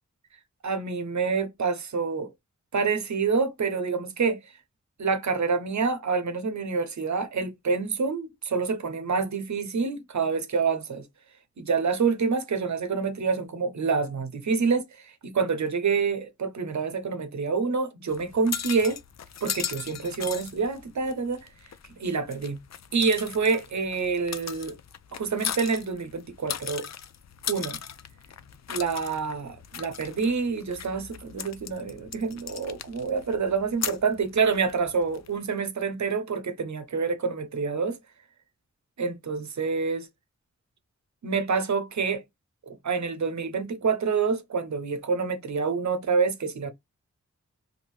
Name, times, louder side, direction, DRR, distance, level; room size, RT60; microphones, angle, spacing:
voice 1, 0.6-2.3 2.7-4.4 5.0-11.0 11.6-19.0 19.4-21.4 22.0-22.6 22.9-24.7 25.1-26.9 27.5-27.8 28.7-38.0 39.0-40.1 41.2-42.2 42.7-46.7, right 5 dB, 70° right, 0.8 m, -27 dB
sound 1, 18.1-35.4, left 8 dB, 65° left, 0.5 m, -38 dB
2.6 x 2.6 x 3.0 m
cardioid pair, 45°, 29 cm